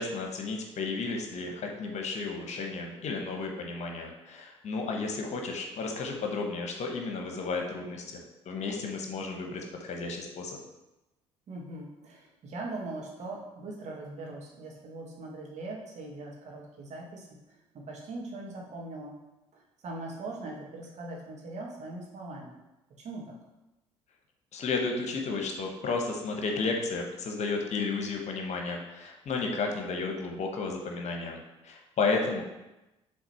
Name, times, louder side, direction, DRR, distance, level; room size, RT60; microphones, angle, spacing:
voice 1, 0.0-10.6 24.5-31.4 31.6-32.4, left 4 dB, 50° left, 2 dB, 1.2 m, -33 dB
voice 2, 11.5-19.1 19.5-22.5 23.0-23.3, right 2 dB, 50° right, -2 dB, 1.8 m, -41 dB
7.1 x 3.7 x 4.4 m, 0.99 s
hypercardioid pair, 50°, 15 cm